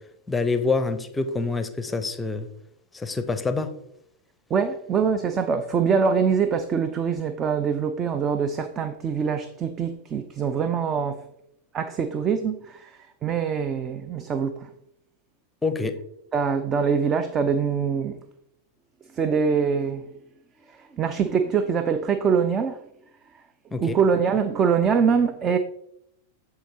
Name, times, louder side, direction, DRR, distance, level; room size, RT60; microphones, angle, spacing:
voice 1, 0.3-2.5 2.9-3.7 15.6-16.0 23.7-24.0, left 3 dB, 10° left, 0.8 m, -26 dB
voice 2, 4.5-11.2 11.7-14.7 16.3-18.2 19.1-20.1 20.7-22.8 23.8-25.6, right 6 dB, 25° right, 0.5 m, -24 dB
14.0 x 4.8 x 2.8 m
figure-of-eight pair, 90°, 0 cm